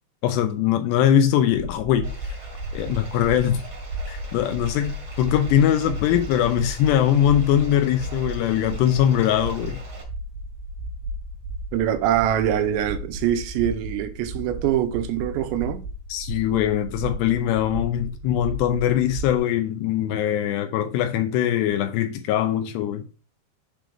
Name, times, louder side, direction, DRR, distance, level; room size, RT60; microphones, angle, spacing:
voice 1, 0.2-2.1 2.7-3.6 4.1-9.8 16.1-23.1, left 10 dB, 80° left, 2.7 m, -21 dB
sound 1, 1.5-19.4, right 1 dB, 75° right, 3.1 m, -34 dB
Bathtub (filling or washing), 2.0-10.0, right 3 dB, 40° right, 1.4 m, -44 dB
voice 2, 11.7-15.9, right 11 dB, 90° right, 3.0 m, -24 dB
7.6 x 6.0 x 3.5 m
omnidirectional pair, 5.1 m